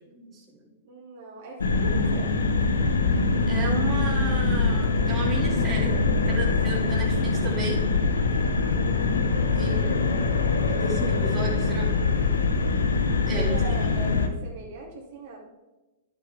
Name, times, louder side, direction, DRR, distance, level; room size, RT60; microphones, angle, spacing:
voice 1, 0.1-0.6 3.5-5.9 6.3-7.8 9.5-10.0 10.7-11.9 13.3-13.9, right 3 dB, 25° right, -5 dB, 2.5 m, -34 dB
voice 2, 0.8-2.4 13.3-15.4, right 3 dB, 60° right, -2 dB, 2.8 m, -40 dB
sound 1, 1.6-14.3, left 3 dB, 85° left, 1.1 m, -23 dB
10.5 x 7.7 x 3.5 m, 1.1 s
hypercardioid pair, 120°, 0 cm